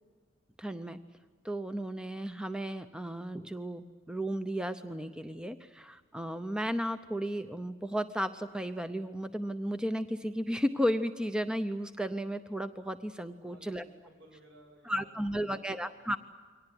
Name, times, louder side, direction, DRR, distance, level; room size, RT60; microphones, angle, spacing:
voice 1, 0.6-1.0 1.4-13.8 14.8-16.2, equal, 5° right, 9 dB, 0.7 m, -34 dB
voice 2, 13.4-16.0, right 1 dB, 65° right, 2 dB, 7.9 m, -58 dB
23.5 x 18.5 x 9.9 m, 1.5 s
head